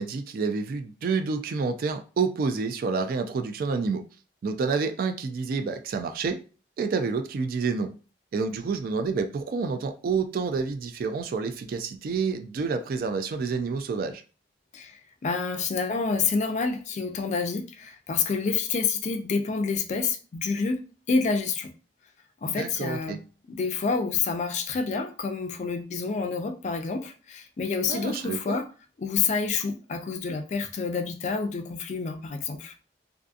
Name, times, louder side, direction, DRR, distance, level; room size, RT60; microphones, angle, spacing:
voice 1, 0.0-4.0 4.4-6.4 6.8-7.9 8.3-14.2 22.4-23.2 27.9-28.6, right 4 dB, 55° right, 0.3 m, -28 dB
voice 2, 14.7-21.7 22.4-23.2 23.5-28.7 29.0-32.7, left 5 dB, 40° left, 0.3 m, -28 dB
2.6 x 2.5 x 2.4 m
head